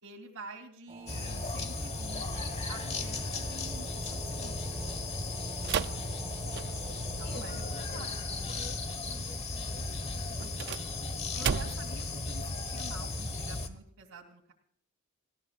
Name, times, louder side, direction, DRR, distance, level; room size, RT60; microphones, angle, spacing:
voice 1, 0.0-4.8 7.2-8.1 11.3-14.5, right 2 dB, 70° right, 1 dB, 2.5 m, -48 dB
sound 1, 0.9-7.5, right 3 dB, 30° right, 1.9 m, -49 dB
sound 2, 1.1-13.7, left 2 dB, 30° left, 1.3 m, -36 dB
voice 2, 5.5-6.3 7.0-11.0, left 1 dB, 45° left, 4 dB, 1.9 m, -52 dB
sound 3, 5.6-7.0 10.4-12.0, right 7 dB, 50° right, 0.4 m, -34 dB
19.0 x 16.0 x 2.4 m, 0.63 s
head